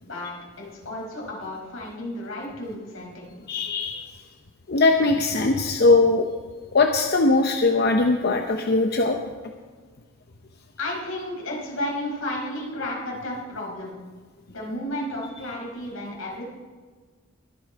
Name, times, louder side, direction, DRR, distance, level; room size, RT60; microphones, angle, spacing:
voice 1, 0.0-3.1 3.5-3.6 10.8-13.9 14.5-16.5, left 1 dB, 80° left, -2 dB, 5.0 m, -32 dB
voice 2, 3.5-4.2 4.7-6.3 6.7-9.2, left 3 dB, 50° left, 4 dB, 0.8 m, -20 dB
21.5 x 8.5 x 4.8 m, 1.5 s
head